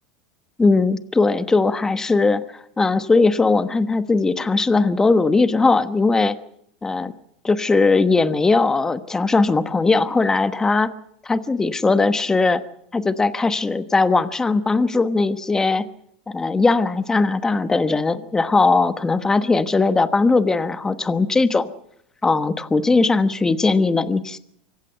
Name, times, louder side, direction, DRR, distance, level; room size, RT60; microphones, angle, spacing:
voice 1, 0.6-6.3 6.8-7.1 7.4-10.9 11.2-12.6 12.9-15.8 16.3-21.7 22.2-24.4, left 3 dB, 15° left, 11 dB, 1.1 m, -19 dB
25.5 x 15.5 x 8.0 m, 0.70 s
supercardioid pair, 115°, 4 cm